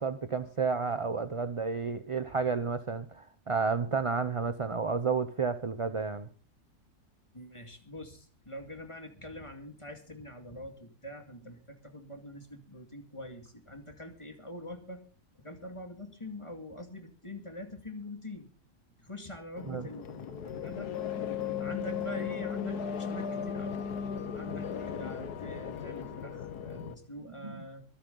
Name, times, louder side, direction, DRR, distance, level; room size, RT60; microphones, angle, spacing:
voice 1, 0.0-6.3 19.7-19.8 27.4-27.7, right 5 dB, 35° right, 11 dB, 0.5 m, -31 dB
voice 2, 7.3-15.0 15.4-18.5 19.0-20.9 21.6-23.9 24.3-27.8, left 1 dB, 20° left, 5 dB, 2.2 m, -44 dB
sound 1, 19.6-27.0, left 7 dB, 85° left, 1.7 m, -36 dB
24.5 x 8.6 x 3.9 m, 0.38 s
omnidirectional pair, 1.6 m